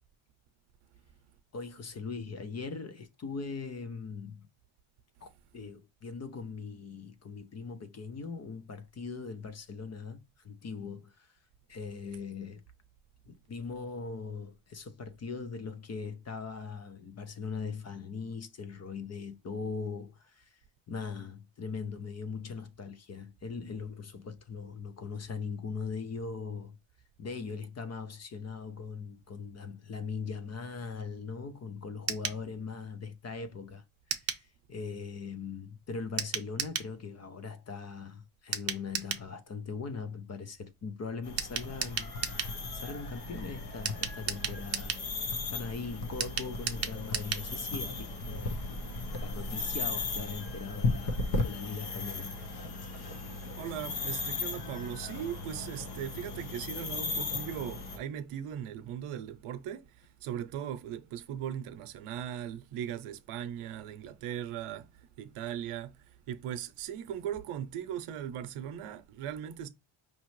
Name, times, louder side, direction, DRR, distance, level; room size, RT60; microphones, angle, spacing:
voice 1, 1.5-4.5 5.2-11.4 11.7-12.6 13.3-20.6 20.9-26.8 27.2-33.8 34.2-45.0 45.5-48.6 49.2-52.3, left 5 dB, 35° left, 0.4 m, -40 dB
sound 1, 32.1-32.4 34.1-34.4 36.2-36.9 38.5-39.3 41.4-42.5 43.8-45.1 46.2-47.5 47.8-47.9 48.1-48.2, right 7 dB, 30° right, 0.6 m, -34 dB
sound 2, 41.2-58.0, left 3 dB, 50° left, 1.0 m, -36 dB
voice 2, 53.6-64.9 65.2-69.7, right 10 dB, 90° right, 0.7 m, -39 dB
5.2 x 3.0 x 3.1 m
cardioid pair, 160°, 50 cm